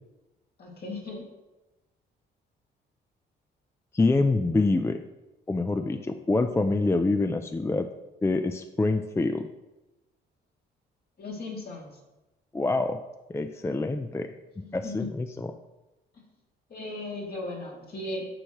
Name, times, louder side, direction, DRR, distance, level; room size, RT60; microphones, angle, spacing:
voice 1, 0.6-1.3 11.2-11.9 14.6-15.1 16.2-16.3 16.7-18.3, left 2 dB, 50° left, -2 dB, 2.5 m, -37 dB
voice 2, 3.9-5.0 5.5-7.9 8.2-9.5 12.5-13.0 13.3-15.5, left 3 dB, 15° left, 8 dB, 0.4 m, -26 dB
9.9 x 6.4 x 3.0 m, 1.0 s
cardioid pair, 90°, 20 cm